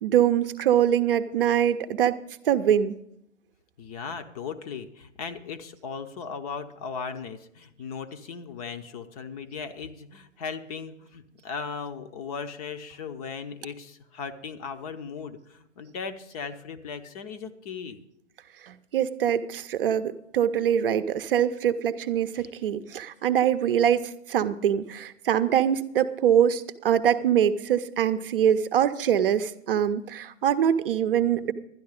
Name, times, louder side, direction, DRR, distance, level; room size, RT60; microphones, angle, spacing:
voice 1, 0.0-2.9 18.6-31.5, right 9 dB, 45° right, 10 dB, 0.7 m, -24 dB
voice 2, 3.8-18.0 22.3-22.5 31.2-31.4, left 5 dB, 30° left, 8 dB, 0.7 m, -37 dB
12.0 x 10.0 x 4.9 m, 0.78 s
figure-of-eight pair, 120°, 38 cm